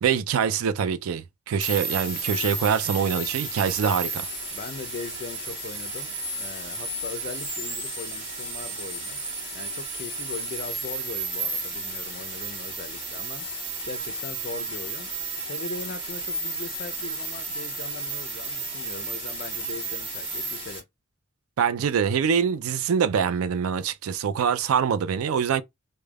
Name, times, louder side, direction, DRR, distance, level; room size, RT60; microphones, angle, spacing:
voice 1, 0.0-4.3 21.6-25.6, right 7 dB, 90° right, 0.4 m, -24 dB
sound 1, 1.6-20.8, right 2 dB, 25° right, 1.2 m, -33 dB
voice 2, 4.5-9.2 9.5-20.9, left 5 dB, 45° left, 0.4 m, -40 dB
3.3 x 2.1 x 2.2 m
head